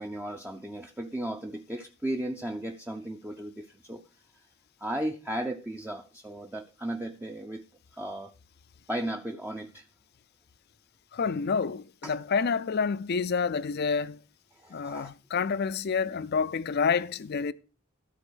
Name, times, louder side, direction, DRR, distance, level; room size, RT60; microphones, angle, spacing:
voice 1, 0.0-4.1 4.8-7.6 8.0-8.3 8.9-9.8 12.0-12.2 14.6-15.1, right 1 dB, 10° right, 0.6 m, -35 dB
voice 2, 11.1-14.2 14.7-17.5, left 5 dB, 50° left, 0.5 m, -28 dB
13.0 x 4.3 x 6.3 m
head